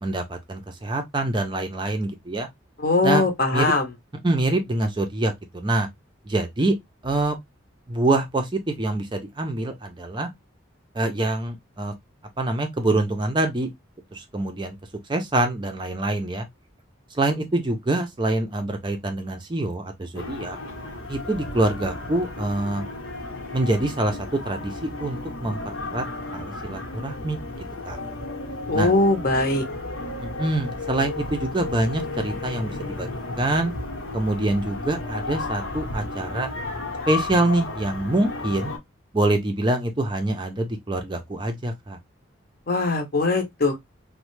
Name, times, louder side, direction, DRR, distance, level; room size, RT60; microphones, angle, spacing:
voice 1, 0.0-2.5 3.0-3.2 3.5-3.7 4.2-5.9 6.3-6.8 7.0-7.4 7.9-10.3 10.9-11.9 12.4-13.7 14.1-14.8 15.1-16.5 17.1-20.6 21.1-22.8 23.5-24.2 24.4-26.0 26.3-27.4 27.9-28.0 28.7-28.9 30.2-33.1 33.4-33.7 34.1-36.5 37.1-38.7 39.1-42.0, right 2 dB, 20° right, 0.5 m, -25 dB
voice 2, 2.8-3.8 28.7-29.6 42.7-43.8, left 3 dB, 45° left, 0.7 m, -21 dB
sound 1, 20.1-38.8, left 2 dB, 90° left, 1.0 m, -33 dB
3.1 x 2.1 x 3.0 m
head